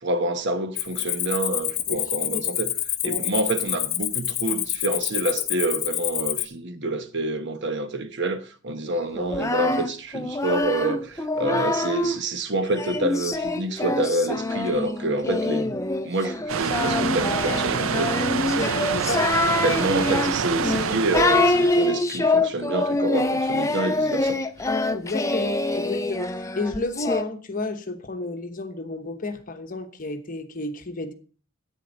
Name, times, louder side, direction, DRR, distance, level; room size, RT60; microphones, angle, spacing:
voice 1, 0.0-2.7 3.0-15.8 16.0-18.6 19.6-24.7, right 2 dB, 55° right, 1.0 m, -27 dB
Cricket, 0.8-6.4, left 14 dB, 75° left, 0.8 m, -28 dB
Singing, 9.2-12.2 12.7-27.2, left 2 dB, 15° left, 0.5 m, -25 dB
sound 1, 16.5-21.8, right 6 dB, 75° right, 0.5 m, -26 dB
voice 2, 18.6-19.3 24.9-31.1, left 2 dB, 40° left, 1.1 m, -31 dB
10.5 x 8.8 x 4.0 m
head